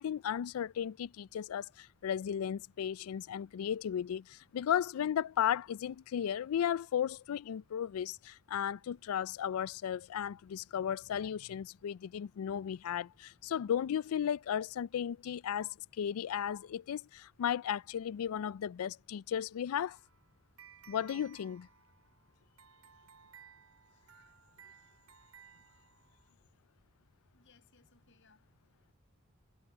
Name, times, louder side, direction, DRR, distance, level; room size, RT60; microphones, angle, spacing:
voice 1, 0.0-20.0 20.9-21.7, left 9 dB, 85° left, 0.3 m, -35 dB
sound 1, 19.8-26.3, right 8 dB, 90° right, 5.1 m, -59 dB
voice 2, 27.3-28.9, left 4 dB, 60° left, 6.8 m, -68 dB
head